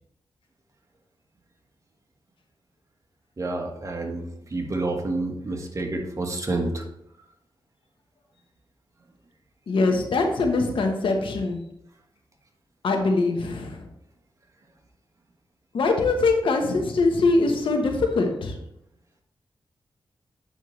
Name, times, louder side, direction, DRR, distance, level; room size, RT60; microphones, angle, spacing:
voice 1, 3.4-6.8, right 2 dB, 35° right, 2 dB, 1.4 m, -29 dB
voice 2, 9.7-11.6 12.8-13.9 15.7-18.6, left 3 dB, 80° left, 4 dB, 1.1 m, -22 dB
8.2 x 5.5 x 3.2 m, 0.78 s
cardioid pair, 75°, 9 cm